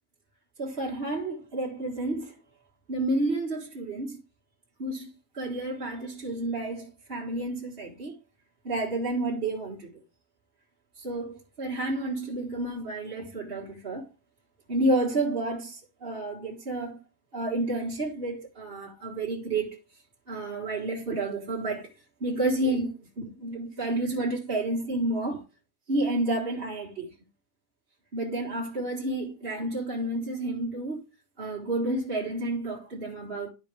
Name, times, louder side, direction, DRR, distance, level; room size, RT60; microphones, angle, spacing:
voice 1, 0.6-2.4 2.9-4.2 4.8-8.2 8.6-9.9 11.0-14.1 14.7-17.0 17.3-19.8 20.3-21.9 22.2-25.4 25.9-27.1 28.1-31.0 31.4-33.5, right 2 dB, 35° right, 1.6 m, -30 dB
12.0 x 4.9 x 3.4 m
omnidirectional pair, 1.8 m